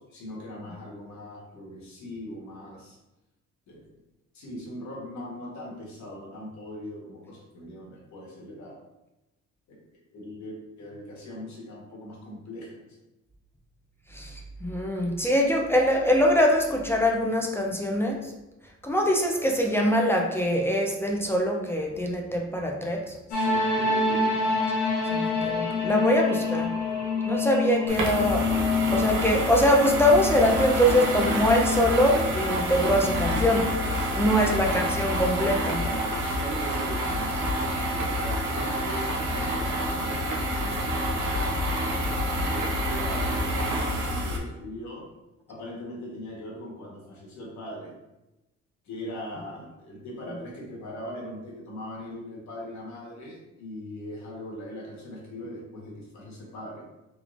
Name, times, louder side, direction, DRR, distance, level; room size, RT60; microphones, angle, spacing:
voice 1, 0.1-3.0 3.7-3.9 4.3-8.8 9.7-12.9 23.3-24.3 33.8-34.7 35.8-41.5 42.3-45.0 45.5-47.9 48.8-56.8, left 1 dB, 70° left, -3 dB, 1.3 m, -40 dB
voice 2, 14.1-18.3 18.8-23.1 25.1-26.7 27.3-28.5 28.9-33.7 34.1-35.8, equal, 10° left, 0 dB, 0.5 m, -23 dB
sound 1, 23.3-36.0, left 4 dB, 85° left, 0.9 m, -28 dB
sound 2, 27.9-44.4, equal, 85° right, 0.8 m, -28 dB
3.4 x 3.2 x 2.5 m, 0.98 s
cardioid pair, 90°, 30 cm